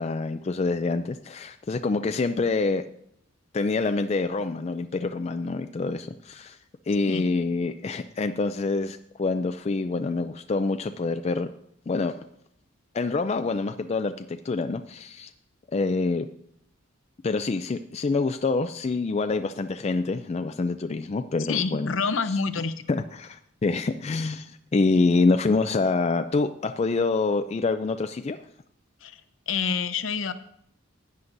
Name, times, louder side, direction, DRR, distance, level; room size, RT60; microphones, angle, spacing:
voice 1, 0.0-2.8 3.5-6.6 6.9-11.5 11.9-12.1 12.9-15.3 15.7-16.3 17.2-22.0 22.9-28.4, left 3 dB, 30° left, 8 dB, 0.3 m, -26 dB
voice 2, 21.5-22.7 29.0-29.2 29.5-30.3, left 5 dB, 70° left, 11 dB, 0.7 m, -27 dB
15.5 x 9.4 x 2.6 m, 0.71 s
head